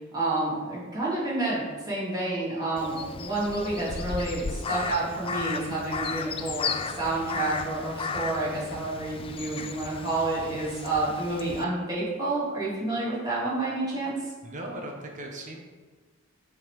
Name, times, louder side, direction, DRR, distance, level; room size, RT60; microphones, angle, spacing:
voice 1, 0.1-14.1, right 2 dB, 20° right, -8 dB, 2.2 m, -29 dB
Crow, 2.8-11.6, left 5 dB, 25° left, 0.3 m, -35 dB
voice 2, 14.4-15.6, right 1 dB, 40° right, 0 dB, 0.9 m, -38 dB
7.5 x 3.8 x 4.8 m, 1.4 s
head